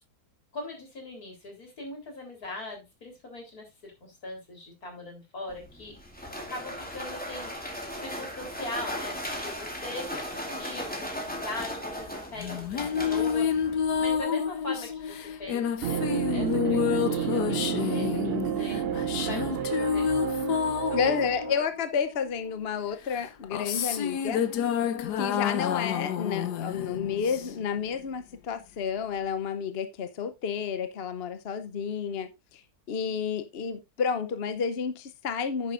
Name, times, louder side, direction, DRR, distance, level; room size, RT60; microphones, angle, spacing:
voice 1, 0.5-6.0 6.2-13.5 14.0-18.8 19.3-21.6, left 2 dB, 65° left, 4.2 m, -41 dB
sound 1, 5.5-14.2, equal, 5° left, 2.2 m, -37 dB
sound 2, 12.4-22.3 23.1-27.8, left 8 dB, 85° left, 1.5 m, -29 dB
sound 3, 15.8-21.5, right 9 dB, 60° right, 0.6 m, -30 dB
voice 2, 20.9-24.4 25.2-32.6 32.9-35.7, left 6 dB, 45° left, 0.9 m, -30 dB
10.0 x 10.0 x 2.5 m
omnidirectional pair, 1.7 m